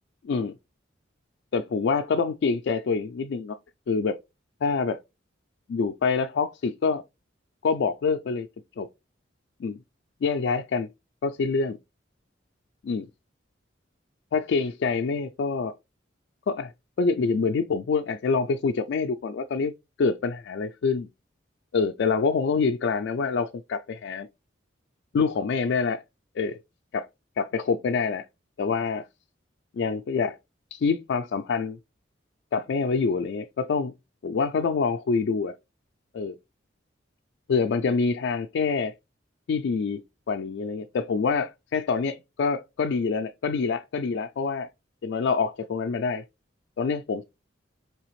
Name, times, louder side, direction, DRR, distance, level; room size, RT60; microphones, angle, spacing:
voice 1, 1.5-3.6 3.9-4.2 4.6-5.0 5.7-7.0 7.6-8.5 8.8-8.9 9.6-9.8 10.2-10.9 11.2-11.8 12.8-13.1 14.3-15.8 16.5-16.7 17.0-19.7 20.0-21.1 21.7-24.3 25.1-26.0 26.4-26.6 26.9-27.1 27.4-28.3 28.6-29.1 29.7-30.4 30.7-31.8 32.5-33.9 34.2-35.5 36.1-36.4 37.5-38.9 39.5-40.0 40.3-44.7 45.0-46.2 46.8-47.2, left 5 dB, 65° left, 0.3 m, -26 dB
4.8 x 3.3 x 3.0 m
head